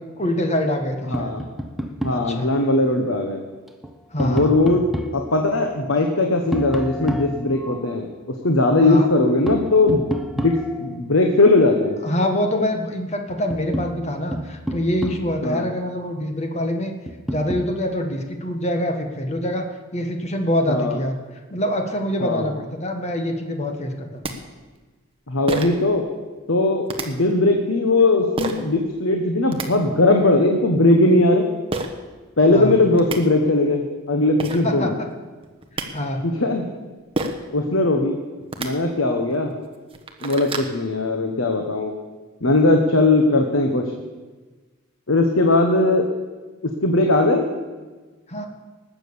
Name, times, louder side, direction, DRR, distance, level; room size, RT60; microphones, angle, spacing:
voice 1, 0.2-1.3 2.1-2.5 4.1-4.5 8.8-9.1 12.0-16.9 17.3-19.6 19.9-21.1 21.5-24.3 32.5-32.7 34.6-34.9 35.9-36.2 48.3-48.5, left 1 dB, 30° left, 4 dB, 1.5 m, -25 dB
voice 2, 1.1-1.4 2.0-3.4 4.2-4.9 5.1-10.1 10.4-12.0 15.4-15.6 20.7-21.0 22.2-22.5 25.3-26.0 26.5-31.5 32.4-34.9 36.2-36.7 37.5-38.2 38.6-39.5 40.2-41.9 42.4-43.9 45.1-46.1 46.6-47.5, left 2 dB, 70° left, 3 dB, 1.3 m, -19 dB
Tap, 1.1-2.3 3.7-5.2 6.5-8.0 9.5-11.0 12.8-12.9 13.3-15.5 17.1-17.7, equal, ahead, 0.8 m, -30 dB
sound 1, 23.9-24.0 24.2-24.3 25.5-25.8 26.9-27.1 28.4-28.6 29.3-29.7 31.7-31.9 32.7-32.8 33.0-33.2 34.1-34.2 34.4-34.6 35.4-35.9 37.2-37.5 38.4-38.7 39.3-39.4 39.8-40.7, right 2 dB, 25° right, 1.1 m, -27 dB
19.5 x 7.6 x 7.0 m, 1.3 s
head